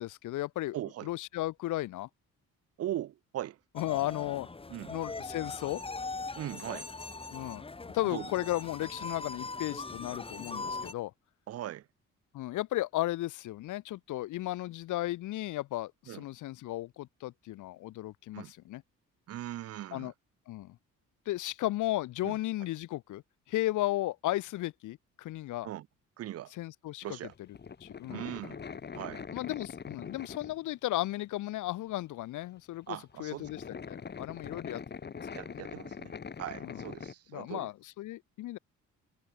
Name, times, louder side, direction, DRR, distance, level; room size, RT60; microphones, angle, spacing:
voice 1, 0.0-0.8 1.0-2.1 3.7-4.5 4.9-5.8 7.3-7.6 7.9-11.1 12.3-18.8 19.9-20.1 20.5-20.8 21.3-25.7 26.5-27.2 27.8-28.2 29.3-35.1 35.5-35.6 36.6-36.8 37.3-38.6, left 16 dB, 80° left, 1.0 m, -35 dB
voice 2, 0.7-1.1 2.8-3.6 4.7-4.9 6.3-6.9 8.1-8.3 11.5-11.9 16.1-16.2 18.3-18.5 19.3-20.1 22.2-22.3 25.6-25.9 26.2-26.5 27.0-27.3 28.1-28.6 28.9-29.3 32.9-33.5 35.3-37.7, right 13 dB, 55° right, 0.5 m, -39 dB
sound 1, 3.8-10.9, left 3 dB, 20° left, 1.4 m, -41 dB
Mallet percussion, 8.2-10.6, right 3 dB, 20° right, 4.9 m, -67 dB
sound 2, 27.3-30.8 31.3-31.4 32.6-32.7 32.9-37.1, left 6 dB, 35° left, 1.6 m, -43 dB
cardioid pair, 90°, 30 cm